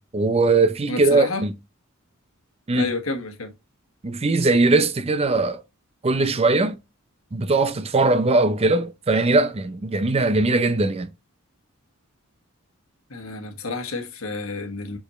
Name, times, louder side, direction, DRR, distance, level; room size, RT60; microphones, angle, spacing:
voice 1, 0.0-1.5 2.7-2.9 4.0-5.6 6.0-6.8 7.3-11.1, right 3 dB, 30° right, 0.5 m, -20 dB
voice 2, 0.9-1.4 2.7-3.5 13.1-15.0, left 2 dB, 80° left, 1.3 m, -29 dB
6.2 x 5.5 x 3.0 m
head